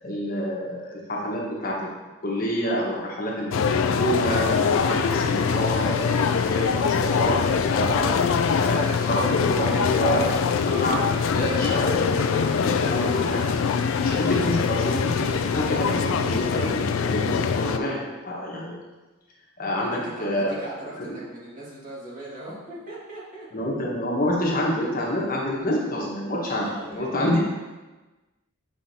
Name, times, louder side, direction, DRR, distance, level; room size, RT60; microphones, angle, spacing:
voice 1, 0.0-1.9 2.2-8.1 8.6-10.3 10.7-13.4 14.0-18.8 19.6-20.5 23.5-27.4, equal, 40° left, -3 dB, 1.2 m, -27 dB
sound 1, 3.5-17.8, left 6 dB, 65° left, 0.3 m, -23 dB
sound 2, 3.9-16.8, equal, 10° right, 1.1 m, -42 dB
voice 2, 19.8-23.5 26.5-27.4, right 1 dB, 40° right, -7 dB, 1.9 m, -39 dB
7.7 x 5.4 x 2.8 m, 1.2 s
head